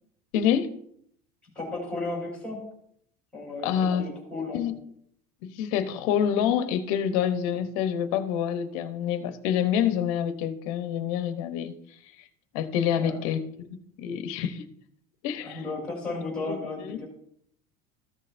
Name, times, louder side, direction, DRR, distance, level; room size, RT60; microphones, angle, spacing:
voice 1, 0.3-0.7 3.6-4.1 4.5-4.7 5.4-11.7 12.5-14.6 15.2-15.6 16.5-17.0, left 9 dB, 65° left, 9 dB, 0.9 m, -27 dB
voice 2, 1.6-2.7 3.3-4.6 12.9-13.2 15.4-17.1, left 2 dB, 5° left, -2 dB, 3.6 m, -34 dB
14.0 x 6.5 x 2.6 m, 0.68 s
cardioid pair, 170°, 20 cm